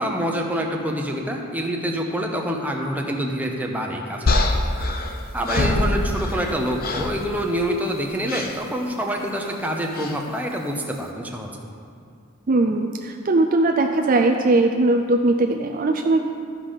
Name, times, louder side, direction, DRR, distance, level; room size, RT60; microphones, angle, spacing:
voice 1, 0.0-4.3 5.3-11.5, equal, 10° right, 0 dB, 0.8 m, -26 dB
sound 1, 4.3-6.5 6.8-7.2 8.3-8.6 9.9-10.2, left 2 dB, 45° left, 0.7 m, -23 dB
voice 2, 12.5-16.2, right 2 dB, 40° right, 4 dB, 0.4 m, -19 dB
13.0 x 5.2 x 5.6 m, 2.3 s
head